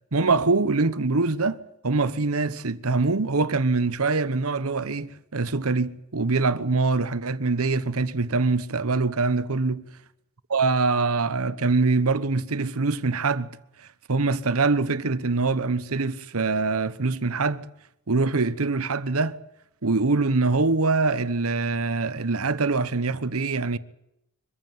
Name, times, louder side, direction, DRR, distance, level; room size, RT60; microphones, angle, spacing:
voice 1, 0.1-9.8 10.5-13.5 14.1-17.7 18.1-19.4 19.8-23.8, right 3 dB, 80° right, 1.1 m, -24 dB
24.0 x 15.0 x 9.4 m
head